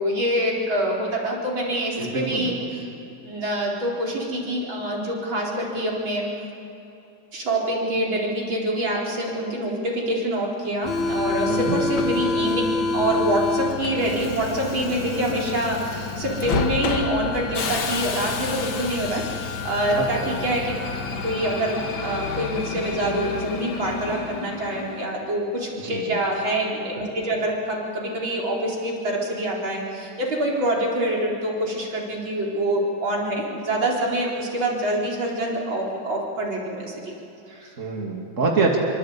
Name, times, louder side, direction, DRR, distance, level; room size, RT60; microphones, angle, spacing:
voice 1, 0.0-2.9 3.2-6.2 7.3-12.6 12.9-20.7 21.1-37.1 37.5-37.7, right 1 dB, 80° right, -3 dB, 5.0 m, -26 dB
voice 2, 1.9-2.5 11.5-11.8 19.9-20.3 25.8-26.2 37.8-38.8, right 4 dB, 40° right, 0 dB, 3.0 m, -25 dB
Subway metro underground, 10.8-25.2, left 3 dB, 80° left, 2.2 m, -28 dB
26.0 x 25.0 x 8.6 m, 2.7 s
omnidirectional pair, 2.1 m